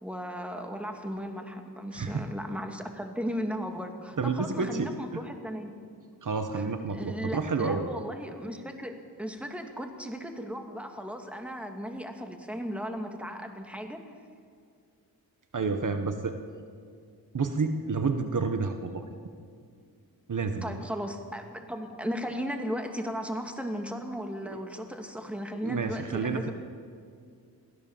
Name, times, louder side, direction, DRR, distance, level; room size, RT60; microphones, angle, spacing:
voice 1, 0.0-5.7 6.5-6.6 6.9-14.0 20.6-26.5, equal, 5° right, 4 dB, 2.5 m, -36 dB
voice 2, 1.9-2.2 4.2-5.2 6.2-7.9 15.5-16.3 17.3-19.1 20.3-20.6 24.5-24.6 25.6-26.5, right 4 dB, 55° right, 7 dB, 1.5 m, -30 dB
23.0 x 16.5 x 7.4 m, 2.3 s
wide cardioid pair, 85°, 37 cm